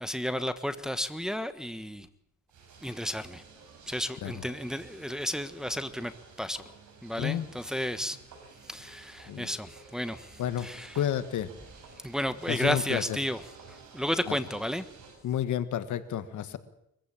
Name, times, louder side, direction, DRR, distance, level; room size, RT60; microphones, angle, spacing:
voice 1, 0.0-2.1 2.8-3.4 3.9-6.1 6.4-6.7 7.0-8.2 8.7-11.0 12.0-13.4 13.7-14.8, equal, ahead, 10 dB, 1.4 m, -32 dB
sound 1, 2.5-15.2, right 4 dB, 75° right, 7.0 m, -52 dB
voice 2, 10.9-11.5 12.5-13.0 14.3-14.4 15.2-16.6, left 10 dB, 75° left, 11 dB, 1.7 m, -30 dB
23.5 x 15.5 x 8.8 m, 0.80 s
cardioid pair, 90°, 30 cm